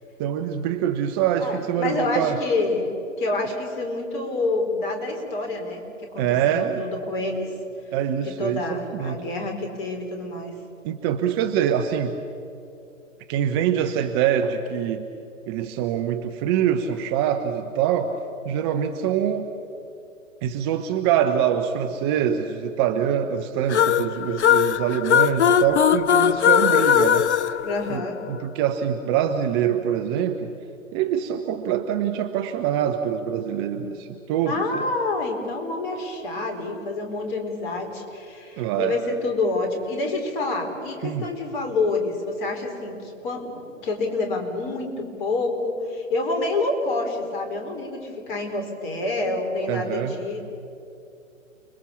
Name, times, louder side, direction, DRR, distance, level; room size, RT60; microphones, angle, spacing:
voice 1, 0.2-2.4 6.2-6.8 7.9-9.2 10.8-12.2 13.3-15.0 15.5-18.2 18.4-19.5 20.4-27.6 27.9-30.5 30.9-34.9 38.6-39.0 41.0-41.3 49.7-50.2, right 9 dB, 20° right, 7 dB, 0.7 m, -24 dB
voice 2, 1.4-2.9 3.2-5.8 6.1-7.5 8.2-10.6 27.6-28.2 34.4-50.5, left 2 dB, 40° left, 3 dB, 4.6 m, -27 dB
sound 1, 23.7-28.4, left 9 dB, 60° left, 0.7 m, -20 dB
30.0 x 21.5 x 7.2 m, 2.7 s
figure-of-eight pair, 125°, 40 cm